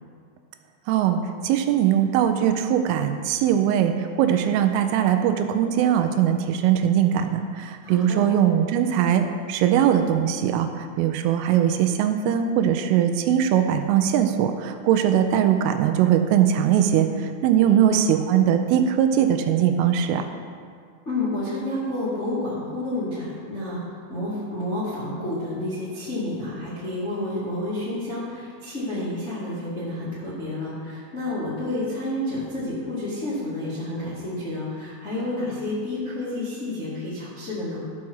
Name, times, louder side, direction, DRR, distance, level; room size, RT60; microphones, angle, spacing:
voice 1, 0.9-20.3, right 9 dB, 85° right, 7 dB, 3.1 m, -21 dB
voice 2, 7.8-8.2 17.6-18.0 21.0-37.8, left 1 dB, 50° left, -10 dB, 0.8 m, -30 dB
13.0 x 5.9 x 6.3 m, 2.1 s
omnidirectional pair, 5.9 m